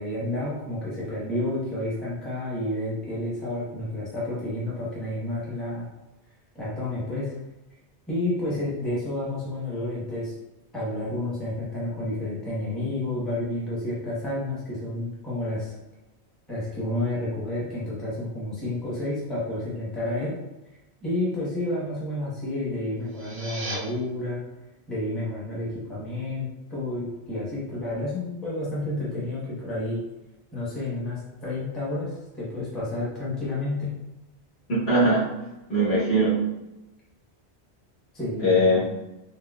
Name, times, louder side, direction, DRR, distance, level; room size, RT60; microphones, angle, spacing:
voice 1, 0.0-5.8 6.5-7.3 8.1-10.3 10.7-15.7 16.5-20.3 21.0-24.4 24.9-30.0 30.5-33.9 38.1-38.8, left 1 dB, ahead, -8 dB, 0.8 m, -30 dB
sound 1, 23.0-23.8, right 2 dB, 70° right, 0.8 m, -36 dB
voice 2, 34.7-35.3 35.7-36.5 38.4-38.8, right 1 dB, 65° left, -9 dB, 1.5 m, -21 dB
4.0 x 2.0 x 2.3 m, 0.98 s
omnidirectional pair, 1.1 m